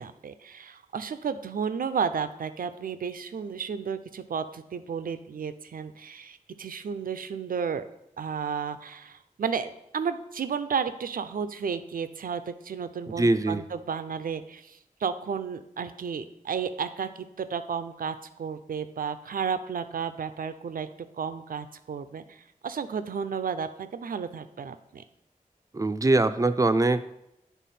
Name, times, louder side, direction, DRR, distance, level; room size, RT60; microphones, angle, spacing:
voice 1, 0.0-7.8 8.2-20.9 21.2-25.0, right 6 dB, 85° right, 11 dB, 0.4 m, -33 dB
voice 2, 13.1-13.6 25.7-27.1, right 2 dB, 25° right, 11 dB, 0.4 m, -23 dB
9.2 x 3.5 x 4.2 m, 0.83 s
wide cardioid pair, 75°, 14 cm